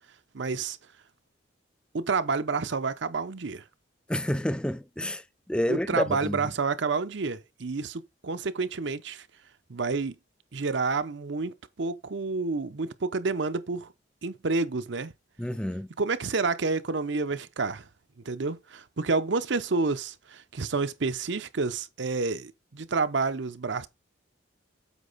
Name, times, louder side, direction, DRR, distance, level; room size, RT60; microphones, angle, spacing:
voice 1, 0.3-0.8 1.9-3.6 5.7-9.3 9.7-10.1 10.5-13.9 14.2-15.1 16.0-17.9 18.2-23.9, right 4 dB, 65° right, 0.7 m, -29 dB
voice 2, 4.1-6.5 15.4-15.9, left 1 dB, 5° left, 0.4 m, -29 dB
8.2 x 5.2 x 3.9 m
head